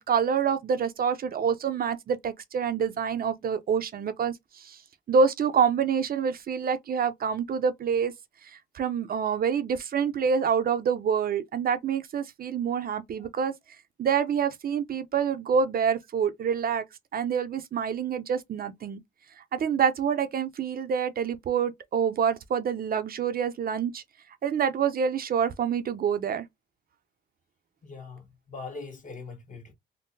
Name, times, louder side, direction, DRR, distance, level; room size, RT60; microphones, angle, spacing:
voice 1, 0.0-4.8 5.1-8.1 8.4-13.5 14.0-16.8 17.1-19.0 19.5-24.0 24.4-26.4, right 6 dB, 50° right, 0.5 m, -27 dB
voice 2, 27.8-29.7, left 4 dB, 40° left, 1.2 m, -41 dB
3.6 x 2.1 x 2.6 m
cardioid pair, 90°, 20 cm